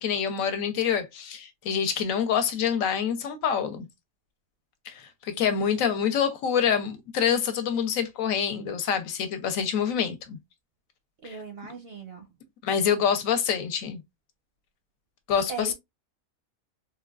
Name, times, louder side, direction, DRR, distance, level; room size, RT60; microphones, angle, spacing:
voice 1, 0.0-3.9 4.9-10.4 11.2-11.4 12.6-14.0 15.3-15.7, left 7 dB, 75° left, 1.0 m, -26 dB
voice 2, 11.2-12.2 15.5-15.7, right 5 dB, 60° right, 0.6 m, -38 dB
3.7 x 2.2 x 2.3 m
omnidirectional pair, 1.5 m